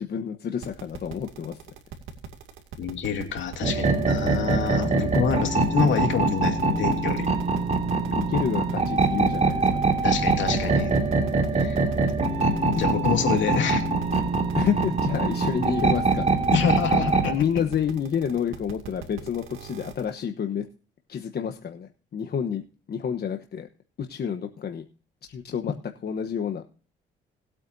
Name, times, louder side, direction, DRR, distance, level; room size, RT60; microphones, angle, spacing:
voice 1, 0.0-1.6 8.1-9.7 14.5-16.3 17.3-20.7 21.1-22.6 22.9-23.7 24.0-24.9 25.3-25.7 26.0-26.6, left 8 dB, 55° left, 5 dB, 1.1 m, -29 dB
sound 1, 0.6-20.1, right 7 dB, 90° right, 2.3 m, -39 dB
voice 2, 2.8-7.3 10.0-10.9 11.5-11.8 12.7-13.8 16.5-17.3, left 7 dB, 70° left, 4 dB, 2.7 m, -27 dB
sound 2, 3.6-17.3, right 3 dB, 35° right, 3.0 m, -23 dB
20.0 x 8.5 x 2.7 m, 0.39 s
cardioid pair, 90°, 20 cm